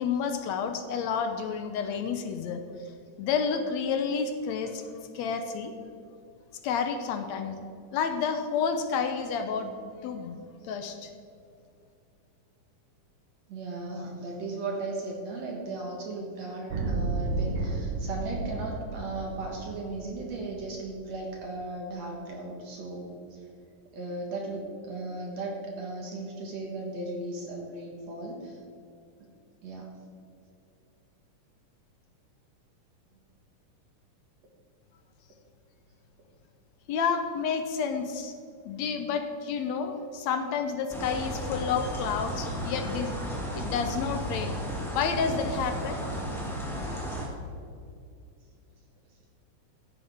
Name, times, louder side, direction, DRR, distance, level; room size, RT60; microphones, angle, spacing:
voice 1, 0.0-2.6 3.2-4.9 5.1-5.7 6.6-7.6 7.9-9.7 10.0-10.4 10.6-11.1 36.9-38.3 38.7-43.2 43.5-44.6 44.9-46.1, left 6 dB, 75° left, 7 dB, 1.8 m, -30 dB
voice 2, 13.5-23.4 23.9-28.6 29.2-29.3 29.6-30.0, right 2 dB, 60° right, 0 dB, 2.4 m, -36 dB
sound 1, 16.7-20.7, right 2 dB, 75° right, 2.8 m, -32 dB
sound 2, 40.9-47.3, equal, ahead, 1.9 m, -34 dB
15.5 x 9.8 x 3.6 m, 2.5 s
omnidirectional pair, 3.7 m